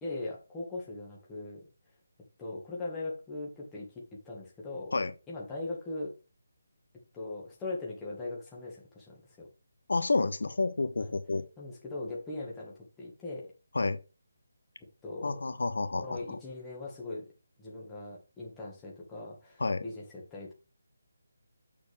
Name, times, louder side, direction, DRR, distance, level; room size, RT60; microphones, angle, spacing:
voice 1, 0.0-1.6 2.4-4.9 5.3-6.1 7.1-9.5 11.0-11.1 11.6-13.5 15.0-15.3 16.0-17.2 17.6-20.5, left 2 dB, 5° left, 1.6 m, -40 dB
voice 2, 9.9-11.4 13.7-14.0 15.2-16.4 19.6-19.8, left 3 dB, 70° left, 0.8 m, -30 dB
7.0 x 6.7 x 3.4 m
hypercardioid pair, 175°, 0 cm